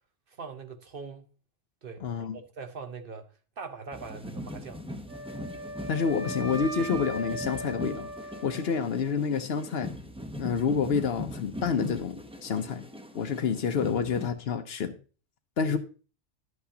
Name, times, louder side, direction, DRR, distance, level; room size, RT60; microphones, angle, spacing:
voice 1, 0.3-1.3 1.8-2.0 2.3-3.3 3.6-4.8 12.5-12.9 15.6-15.8, right 5 dB, 50° right, 1.0 m, -42 dB
voice 2, 2.0-2.4 5.9-8.1 8.4-9.9 10.4-12.8 13.1-15.0 15.6-15.8, left 6 dB, 60° left, 0.9 m, -28 dB
sound 1, 3.9-14.3, left 1 dB, 5° right, 0.6 m, -41 dB
Wind instrument woodwind instrument, 5.1-9.2, right 1 dB, 80° right, 1.6 m, -38 dB
11.5 x 8.1 x 2.8 m
omnidirectional pair, 1.2 m